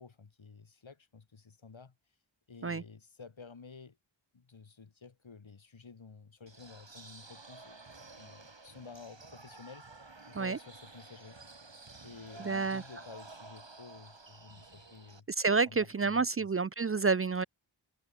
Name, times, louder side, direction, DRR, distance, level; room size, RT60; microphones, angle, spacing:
voice 1, 0.0-1.9 2.5-4.0 4.3-7.8 8.2-9.9 10.3-11.4 12.0-16.5, left 5 dB, 85° left, 2.4 m, -52 dB
sound 1, 6.5-15.2, right 3 dB, 70° right, 7.7 m, -52 dB
voice 2, 12.4-12.8 15.4-17.4, right 4 dB, 30° right, 0.4 m, -29 dB
wide cardioid pair, 60°, 45 cm